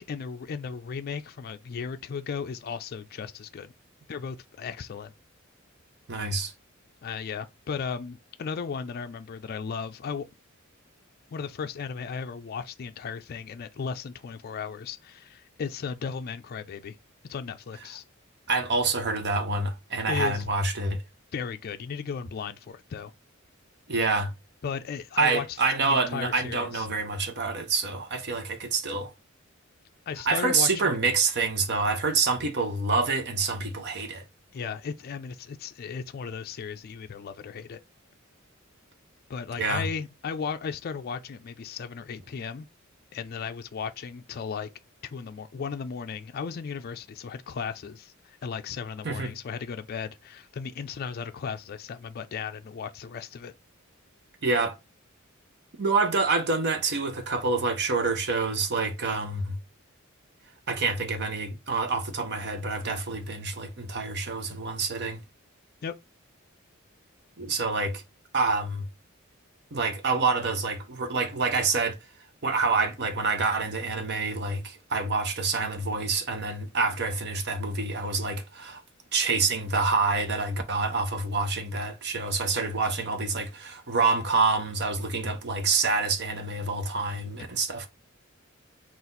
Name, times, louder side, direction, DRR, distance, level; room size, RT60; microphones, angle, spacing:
voice 1, 0.0-3.7 4.1-5.1 7.0-10.3 11.3-17.0 17.3-18.0 20.1-20.4 21.3-23.1 24.6-26.9 30.1-31.0 34.5-37.8 39.3-42.7 43.1-44.7 45.0-53.5 65.8-65.9, left 6 dB, 50° left, 0.4 m, -35 dB
voice 2, 6.1-6.5 18.5-21.0 23.9-24.3 25.2-29.1 30.3-34.2 39.6-39.9 49.0-49.3 54.4-54.8 55.8-59.6 60.7-65.2 67.4-68.0 68.3-68.9 69.7-72.0 72.4-78.8 79.1-87.9, right 4 dB, 55° right, 0.9 m, -27 dB
4.1 x 2.5 x 3.8 m
head